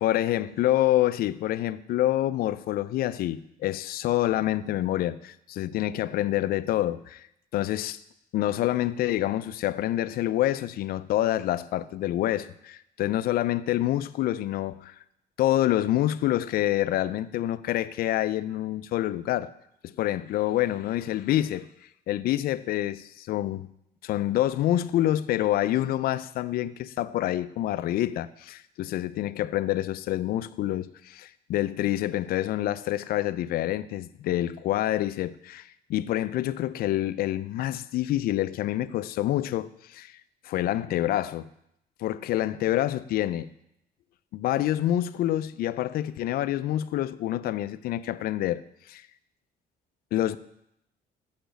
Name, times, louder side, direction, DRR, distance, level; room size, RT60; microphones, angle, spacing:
voice 1, 0.0-7.3 7.5-8.0 8.3-15.0 15.4-19.5 19.8-21.7 22.1-23.7 24.0-41.5 42.0-43.5 44.3-48.6 48.9-49.1 50.1-50.4, left 13 dB, 65° left, 0.4 m, -27 dB
7.0 x 5.0 x 5.1 m
cardioid pair, 110°, 17 cm